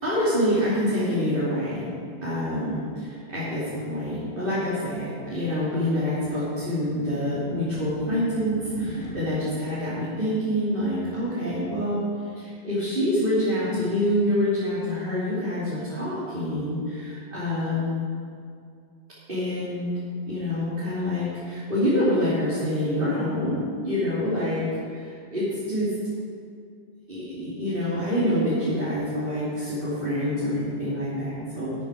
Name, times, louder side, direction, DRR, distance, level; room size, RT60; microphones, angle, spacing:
voice 1, 0.0-1.9 2.2-12.1 12.3-18.0 19.3-19.9 20.3-25.9 27.1-31.7, left 1 dB, 55° right, -11 dB, 3.3 m, -26 dB
sound 1, 2.7-9.1, left 1 dB, 40° left, 2.3 m, -43 dB
12.0 x 8.5 x 6.3 m, 2.3 s
omnidirectional pair, 1.1 m